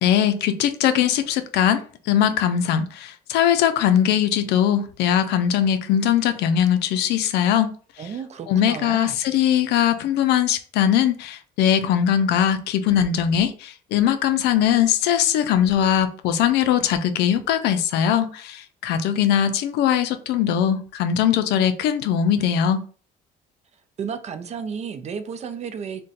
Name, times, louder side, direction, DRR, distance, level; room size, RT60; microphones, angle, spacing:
voice 1, 0.0-1.8 2.1-7.7 8.5-22.8, left 9 dB, 80° left, 0.4 m, -20 dB
voice 2, 8.0-9.2 24.0-26.0, right 6 dB, 40° right, 0.4 m, -32 dB
2.5 x 2.2 x 3.9 m
cardioid pair, 110°, 17 cm